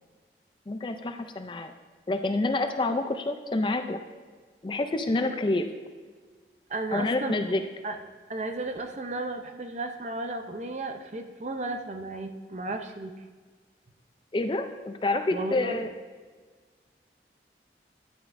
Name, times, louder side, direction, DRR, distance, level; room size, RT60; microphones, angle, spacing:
voice 1, 0.7-1.7 2.1-4.0 4.6-5.7 6.9-7.6 14.3-15.9, left 2 dB, 25° left, 7 dB, 0.4 m, -28 dB
voice 2, 6.7-7.4 7.8-8.0 8.3-13.1 15.3-15.8, right 2 dB, 40° right, 6 dB, 0.5 m, -34 dB
11.0 x 7.9 x 2.6 m, 1.5 s
head